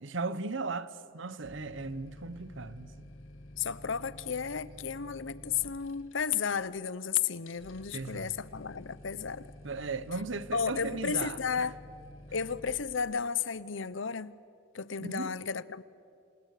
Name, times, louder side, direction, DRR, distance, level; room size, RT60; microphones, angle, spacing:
voice 1, 0.0-3.1 7.9-8.3 9.6-11.6 15.0-15.3, right 3 dB, 65° right, 1.0 m, -37 dB
sound 1, 1.4-13.0, left 1 dB, 90° left, 2.1 m, -50 dB
voice 2, 3.6-9.5 10.5-11.8 12.3-14.3 14.7-15.8, left 6 dB, 70° left, 0.8 m, -33 dB
27.0 x 27.0 x 6.7 m
head